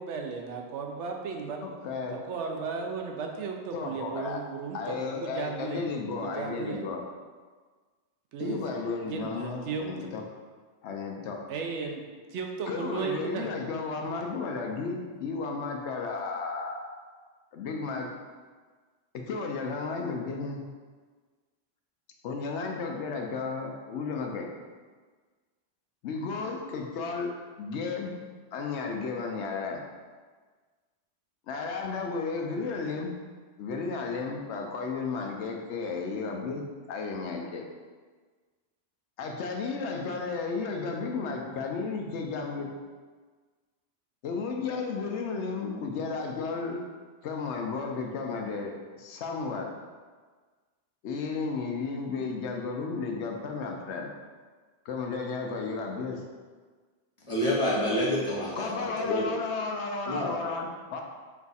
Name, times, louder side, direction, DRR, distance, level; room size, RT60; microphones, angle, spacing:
voice 1, 0.0-1.6 2.1-6.9 8.3-8.7 9.0-10.1 11.5-12.0 12.3-13.5, right 5 dB, 80° right, 2 dB, 0.9 m, -35 dB
voice 2, 1.6-2.1 3.7-4.4 4.7-7.0 8.4-10.2 10.8-11.5 12.7-16.8 17.5-18.1 19.1-20.6 22.2-24.5 26.0-28.1 28.5-29.8 31.5-33.1 33.6-37.7 39.2-42.7 44.2-46.8 47.2-49.7 51.0-54.1 54.9-56.2 58.6-61.0, left 4 dB, 75° left, 2 dB, 0.8 m, -33 dB
voice 3, 57.2-58.7 59.0-59.3 60.1-60.3, left 1 dB, 30° left, -6 dB, 0.8 m, -27 dB
4.5 x 2.3 x 4.0 m, 1.5 s
omnidirectional pair, 1.2 m